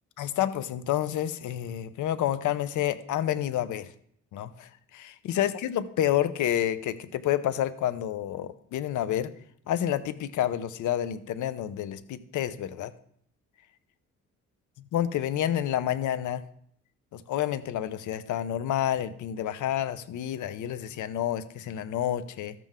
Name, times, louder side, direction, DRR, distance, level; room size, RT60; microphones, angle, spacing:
voice 1, 0.2-3.9 4.3-9.3 9.7-12.9 14.9-16.4 17.1-22.5, left 11 dB, 80° left, 13 dB, 0.8 m, -29 dB
13.5 x 7.6 x 3.7 m, 0.66 s
cardioid pair, 90°, 30 cm